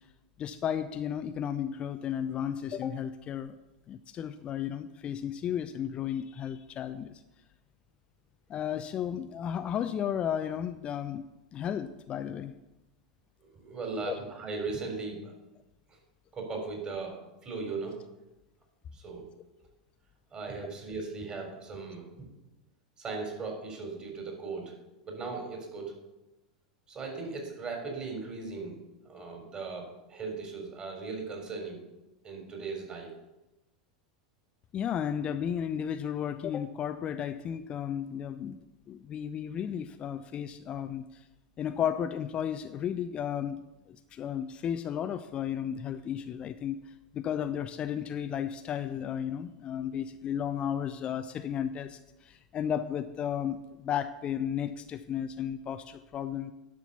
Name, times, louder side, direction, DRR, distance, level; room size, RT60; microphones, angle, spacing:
voice 1, 0.4-3.6 3.9-7.1 8.5-11.2 11.5-12.5 14.0-14.2 34.7-38.6 38.9-41.0 41.6-43.6 43.9-46.8 47.1-56.5, left 9 dB, 30° left, 10 dB, 0.5 m, -33 dB
voice 2, 13.4-15.3 15.9-16.0 16.3-18.0 18.9-19.2 20.3-22.3 23.0-24.8 25.1-26.0 26.9-28.8 29.0-31.8 32.2-33.1, right 4 dB, 30° right, 2 dB, 3.7 m, -38 dB
11.0 x 6.0 x 6.9 m, 0.99 s
figure-of-eight pair, 85°, 4 cm